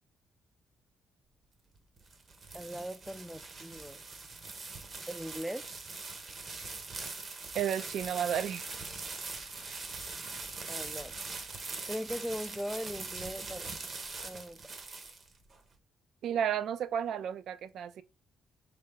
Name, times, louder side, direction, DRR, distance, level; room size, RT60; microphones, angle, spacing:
sound 1, 1.8-15.6, right 3 dB, 45° right, 0.8 m, -42 dB
voice 1, 2.5-4.0 5.1-5.7 10.7-11.2 11.9-13.8 14.2-14.6, equal, 5° right, 0.3 m, -39 dB
voice 2, 7.5-8.6 16.2-18.0, right 9 dB, 70° right, 0.4 m, -32 dB
3.7 x 3.4 x 3.5 m
cardioid pair, 90°, 0 cm